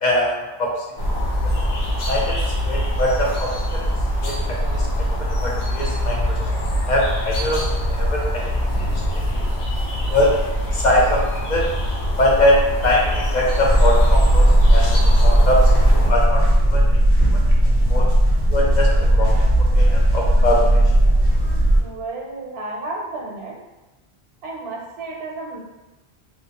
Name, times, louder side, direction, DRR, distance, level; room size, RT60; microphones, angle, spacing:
voice 1, 0.0-0.8 1.4-1.5 2.1-3.8 4.2-4.9 5.2-6.4 6.9-7.6 7.9-8.4 8.9-9.0 9.3-9.4 10.1-10.4 10.7-11.2 11.5-11.6 12.2-14.9 15.2-16.4 16.7-16.8 17.3-17.4 17.9-18.1 18.5-19.3 19.8-20.7, left 1 dB, 55° left, -3 dB, 0.6 m, -22 dB
sound 1, 1.0-16.1, equal, 90° left, 1.0 m, -23 dB
sound 2, 13.6-21.8, right 1 dB, 30° right, 0.5 m, -16 dB
voice 2, 21.8-23.6 24.4-25.6, right 2 dB, 90° right, 0 dB, 0.8 m, -32 dB
3.1 x 2.6 x 2.8 m, 1.1 s
omnidirectional pair, 1.0 m